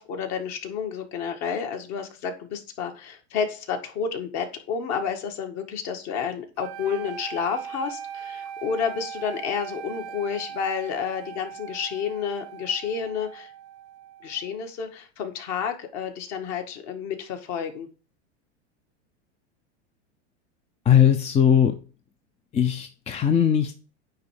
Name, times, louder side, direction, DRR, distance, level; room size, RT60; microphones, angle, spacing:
voice 1, 0.0-13.5 14.2-17.9, left 7 dB, 45° left, 5 dB, 1.8 m, -30 dB
sound 1, 6.6-14.7, right 8 dB, 65° right, 0.8 m, -39 dB
voice 2, 20.9-21.8 22.5-23.7, left 9 dB, 20° left, 7 dB, 0.6 m, -19 dB
9.4 x 3.4 x 6.4 m, 0.36 s
supercardioid pair, 125°, 36 cm